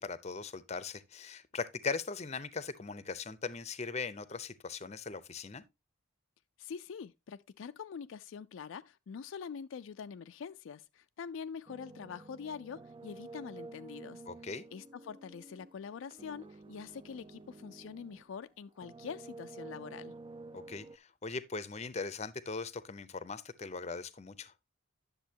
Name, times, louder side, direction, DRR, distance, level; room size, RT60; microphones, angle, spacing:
voice 1, 0.0-5.6 14.3-14.6 20.5-24.5, left 4 dB, 30° left, 0.6 m, -40 dB
voice 2, 6.6-14.2 14.7-20.1, left 6 dB, 70° left, 0.4 m, -45 dB
sound 1, 11.7-18.4 18.7-21.0, right 3 dB, 25° right, 0.4 m, -51 dB
10.5 x 7.0 x 2.8 m
head